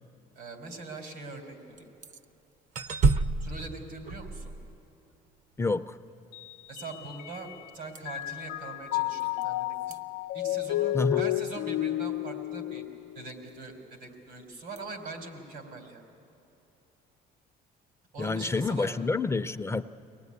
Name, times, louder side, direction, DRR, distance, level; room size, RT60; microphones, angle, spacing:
voice 1, 0.4-1.9 3.4-4.5 6.7-10.0 10.3-12.8 13.2-16.0 18.1-19.0, right 3 dB, 85° right, 4 dB, 3.7 m, -42 dB
sound 1, 1.8-2.2 2.7-5.1 7.9-8.2 9.2-9.4 9.8-10.0 14.8-14.9, right 4 dB, 50° right, 0.7 m, -29 dB
voice 2, 5.6-6.0 10.9-11.2 18.2-19.8, left 3 dB, 15° left, 10 dB, 0.5 m, -28 dB
Mallet percussion, 6.3-7.7 8.0-13.5, left 15 dB, 90° left, 0.4 m, -32 dB
23.0 x 19.0 x 9.6 m, 2.8 s
cardioid pair, 110°, 17 cm